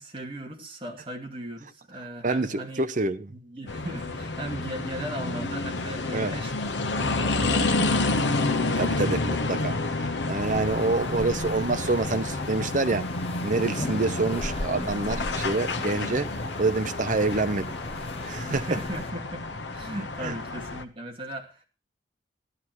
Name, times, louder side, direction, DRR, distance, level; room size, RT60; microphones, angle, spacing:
voice 1, 0.0-2.8 3.3-8.2 10.5-11.3 18.5-21.6, right 1 dB, 30° right, 2.6 m, -38 dB
voice 2, 2.2-3.3 6.1-6.3 8.8-13.1 13.4-16.3 16.6-17.7 18.3-18.6 20.2-20.3, right 3 dB, 45° right, 0.8 m, -27 dB
sound 1, 3.7-20.8, left 3 dB, 80° left, 1.1 m, -29 dB
sound 2, 10.4-19.1, left 1 dB, 35° left, 1.0 m, -38 dB
13.5 x 11.5 x 4.6 m
head